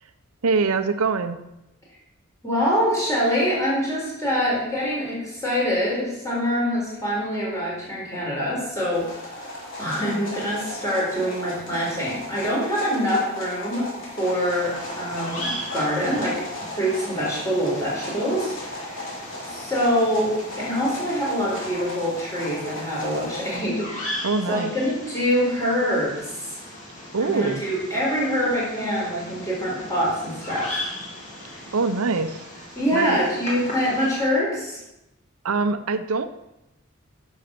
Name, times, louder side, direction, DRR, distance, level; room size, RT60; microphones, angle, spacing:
voice 1, 0.4-1.4 24.2-24.7 27.1-27.6 31.7-33.2 35.4-36.3, right 4 dB, 85° right, 9 dB, 0.7 m, -24 dB
voice 2, 2.4-16.4 16.7-24.2 24.5-26.6 27.2-30.9 31.4-31.6 32.8-34.8, equal, 15° left, -5 dB, 3.9 m, -25 dB
sound 1, 8.9-23.6, left 1 dB, 60° left, 3.2 m, -36 dB
Bird vocalization bird call bird song, 14.2-34.2, left 1 dB, 35° left, 2.6 m, -38 dB
10.0 x 6.5 x 5.9 m, 0.90 s
head